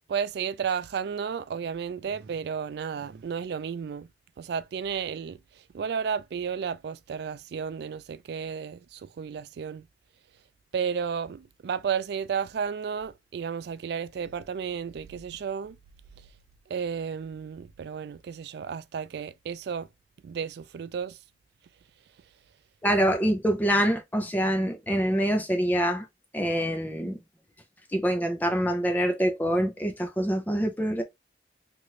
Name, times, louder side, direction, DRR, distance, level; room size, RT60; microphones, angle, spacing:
voice 1, 0.1-4.1 4.4-5.4 5.7-9.8 10.7-15.8 16.7-19.9 20.2-21.2, right 7 dB, 65° right, 0.3 m, -32 dB
voice 2, 22.8-26.1 26.3-27.2 27.9-31.0, equal, 10° left, 0.6 m, -25 dB
3.1 x 2.5 x 2.7 m
head